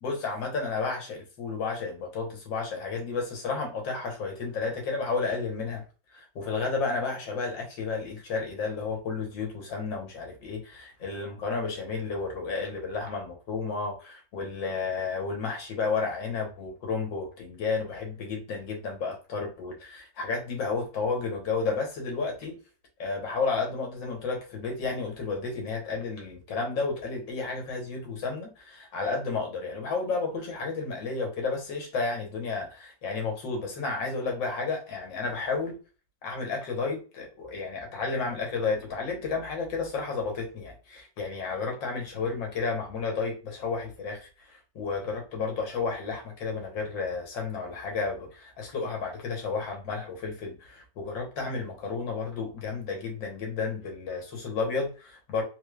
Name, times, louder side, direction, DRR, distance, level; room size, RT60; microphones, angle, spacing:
voice 1, 0.0-5.8 6.1-22.5 23.0-35.8 36.2-55.4, left 4 dB, 90° left, 2 dB, 1.9 m, -32 dB
4.1 x 3.3 x 2.4 m, 0.34 s
omnidirectional pair, 2.0 m